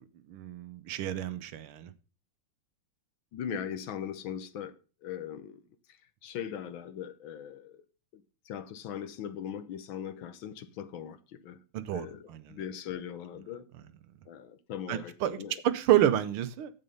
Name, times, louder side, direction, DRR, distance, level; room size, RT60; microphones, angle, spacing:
voice 1, 0.3-1.9 11.7-12.6 14.9-15.4 15.6-16.7, right 12 dB, 80° right, 1.7 m, -29 dB
voice 2, 3.3-4.8 5.0-5.6 5.9-7.8 8.1-11.6 11.9-13.7 14.3-15.6, left 8 dB, 70° left, 1.6 m, -40 dB
9.3 x 8.0 x 5.4 m
omnidirectional pair, 2.4 m